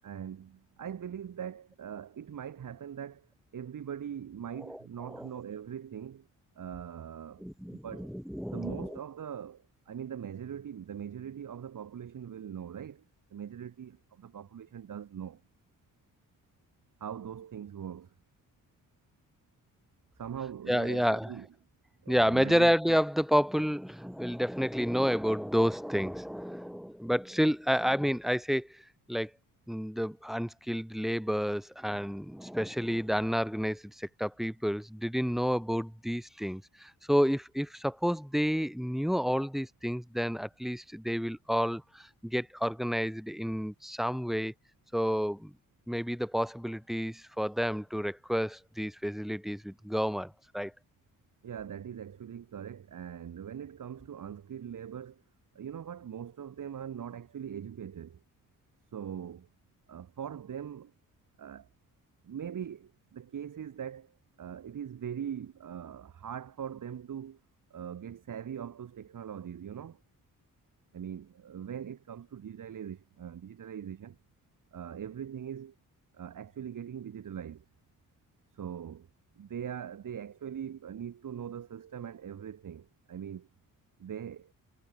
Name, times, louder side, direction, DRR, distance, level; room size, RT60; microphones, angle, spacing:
voice 1, 0.0-3.3 3.5-6.3 6.6-8.1 8.5-13.0 13.3-15.4 17.0-18.1 20.2-21.5 22.0-23.0 51.4-55.2 55.5-58.2 58.9-59.5 59.9-60.9 61.4-61.7 62.2-67.4 67.7-70.0 70.9-74.2 74.7-75.7 76.1-77.6 78.5-79.1 79.4-83.5 84.0-84.5, right 8 dB, 65° right, 7.2 m, -41 dB
voice 2, 7.4-9.0 20.7-21.3 22.1-28.8 29.1-29.3 29.7-44.5 44.9-45.5 45.9-50.7, equal, ahead, 2.0 m, -30 dB
cardioid pair, 90°, 34 cm